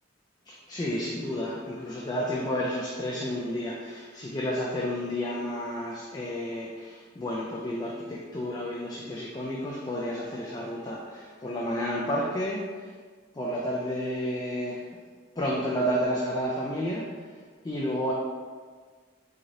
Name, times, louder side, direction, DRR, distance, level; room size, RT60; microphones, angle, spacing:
voice 1, 0.5-12.9 13.3-15.0 15.4-18.1, equal, 20° left, -4 dB, 0.3 m, -31 dB
3.7 x 3.1 x 2.6 m, 1.5 s
head